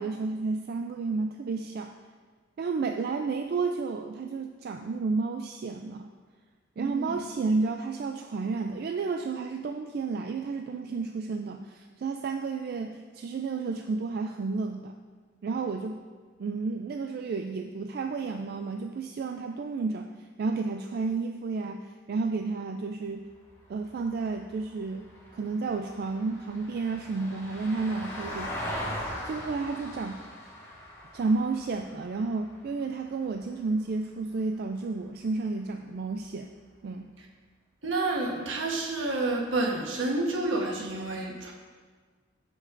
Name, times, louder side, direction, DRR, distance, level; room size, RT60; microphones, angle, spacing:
voice 1, 0.0-1.9 2.6-6.1 6.8-14.9 15.4-16.0 16.4-20.1 20.4-23.2 23.7-28.5 28.8-28.9 29.3-30.2 31.1-36.5 36.8-37.1, right 4 dB, 50° right, 4 dB, 0.3 m, -31 dB
voice 2, 6.8-7.2 37.8-41.5, right 2 dB, 75° right, 0 dB, 1.2 m, -29 dB
Vehicle, 23.3-33.7 36.0-36.1, equal, 15° left, 1.5 m, -41 dB
13.0 x 5.3 x 2.6 m, 1.5 s
head